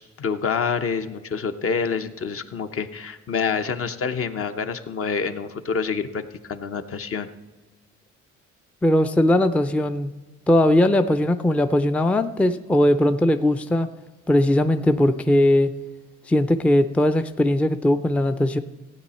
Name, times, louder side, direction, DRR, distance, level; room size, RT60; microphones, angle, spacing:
voice 1, 0.0-7.3, left 5 dB, 45° left, 8 dB, 0.9 m, -27 dB
voice 2, 8.8-10.1 10.5-13.9 14.3-15.7 16.3-18.6, left 1 dB, 5° left, 9 dB, 0.4 m, -19 dB
15.5 x 8.9 x 4.3 m, 1.3 s
cardioid pair, 90°, 30 cm